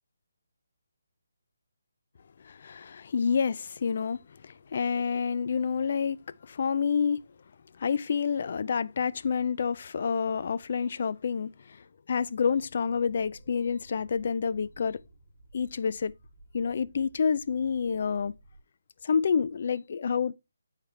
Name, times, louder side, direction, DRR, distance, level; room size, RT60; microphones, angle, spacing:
voice 1, 2.4-7.2 7.8-15.0 15.5-16.1 16.5-18.3 19.0-20.3, left 6 dB, 45° left, 0.3 m, -28 dB
sound 1, 13.0-18.6, right 2 dB, 25° right, 1.3 m, -56 dB
8.0 x 4.9 x 3.2 m
hypercardioid pair, 170°, 0 cm